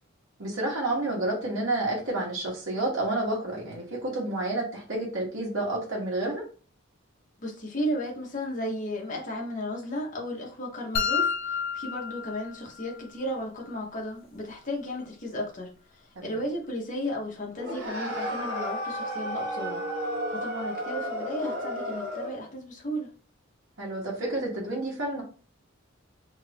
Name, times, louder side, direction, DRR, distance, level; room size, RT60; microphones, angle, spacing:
voice 1, 0.4-6.4 16.1-16.4 23.8-25.2, right 2 dB, 70° right, 1.2 m, -30 dB
voice 2, 7.4-23.1, equal, 40° left, 0.9 m, -34 dB
sound 1, 10.9-13.0, left 6 dB, 65° left, 0.5 m, -29 dB
sound 2, 17.6-22.4, equal, 55° right, 1.0 m, -32 dB
2.9 x 2.5 x 3.3 m
head